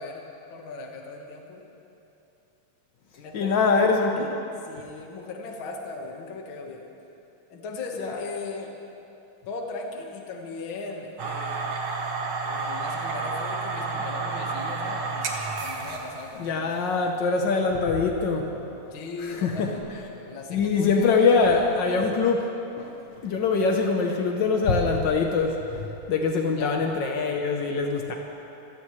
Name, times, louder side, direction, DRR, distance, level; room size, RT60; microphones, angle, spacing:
voice 1, 0.0-1.7 3.2-3.9 4.2-6.9 7.5-8.7 9.5-11.7 12.4-16.7 18.9-22.0 26.5-27.0, left 3 dB, 50° left, 1 dB, 2.0 m, -38 dB
voice 2, 3.3-4.3 8.0-8.2 16.4-18.5 19.2-19.7 20.5-22.5 22.8-22.9 23.2-28.1, left 4 dB, 80° left, 2 dB, 1.0 m, -23 dB
sound 1, 11.2-16.4, right 4 dB, 55° right, 1.3 m, -30 dB
25.5 x 17.0 x 3.2 m, 2.9 s
omnidirectional pair, 3.3 m